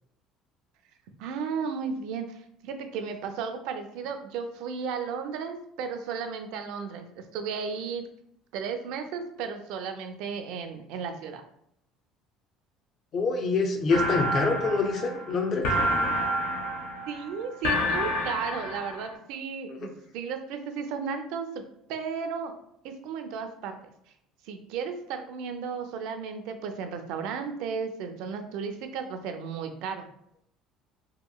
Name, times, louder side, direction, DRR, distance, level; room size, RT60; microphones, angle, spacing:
voice 1, 1.2-8.0 8.5-11.4 17.1-21.6 21.9-22.5 22.8-23.8 24.4-30.1, right 6 dB, 75° right, 6 dB, 0.4 m, -34 dB
voice 2, 13.1-15.6, left 4 dB, 40° left, 4 dB, 0.5 m, -25 dB
sound 1, 13.9-19.1, equal, 85° left, 0.6 m, -29 dB
2.8 x 2.7 x 2.2 m, 0.72 s
cardioid pair, 140°, 0 cm